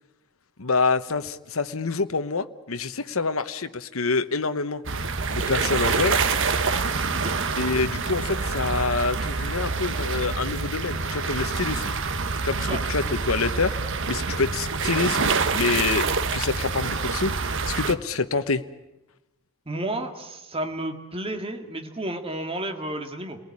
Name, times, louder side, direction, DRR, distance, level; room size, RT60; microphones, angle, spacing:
voice 1, 0.6-4.8 5.3-6.2 7.6-11.9 12.4-13.8 14.1-18.6, left 4 dB, 70° left, 9 dB, 1.0 m, -26 dB
sound 1, 4.8-17.9, right 4 dB, 60° right, 1.3 m, -26 dB
voice 2, 19.7-23.4, right 1 dB, 25° right, 5 dB, 2.3 m, -32 dB
29.5 x 19.0 x 9.8 m, 0.97 s
head